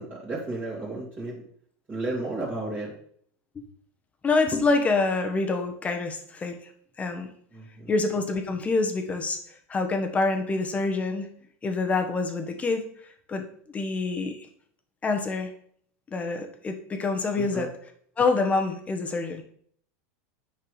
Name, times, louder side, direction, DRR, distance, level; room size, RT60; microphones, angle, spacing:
voice 1, 0.0-1.4 1.9-2.9 7.5-7.9 17.4-17.7, right 2 dB, 20° right, -7 dB, 2.5 m, -33 dB
voice 2, 4.2-6.6 7.0-7.3 7.9-9.4 9.7-11.3 11.6-12.8 13.3-14.5 15.0-15.5 16.1-17.7 18.2-19.4, left 3 dB, 15° left, 5 dB, 1.3 m, -26 dB
9.0 x 5.9 x 5.0 m, 0.62 s
supercardioid pair, 145°, 8 cm